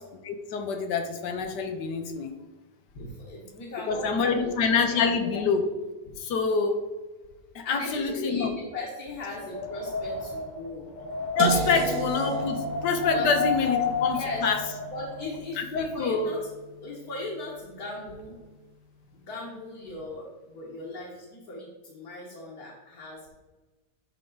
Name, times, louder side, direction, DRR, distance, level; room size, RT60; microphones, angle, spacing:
voice 1, 0.2-2.3 3.9-5.7 6.2-6.8 7.5-8.5 11.3-14.6 15.6-16.3, left 5 dB, 80° left, 6 dB, 1.4 m, -26 dB
voice 2, 3.0-4.6 4.9-5.4 7.6-10.9 11.5-11.9 13.1-13.3 13.6-13.7 14.1-14.5 14.9-16.4 16.8-18.4 19.1-23.3, left 2 dB, 60° left, -4 dB, 1.7 m, -38 dB
Wind, 9.3-15.3, left 4 dB, 45° left, 0.6 m, -32 dB
sound 1, 11.4-17.3, right 4 dB, 65° right, 1.1 m, -34 dB
11.0 x 3.7 x 3.8 m, 1.2 s
omnidirectional pair, 1.8 m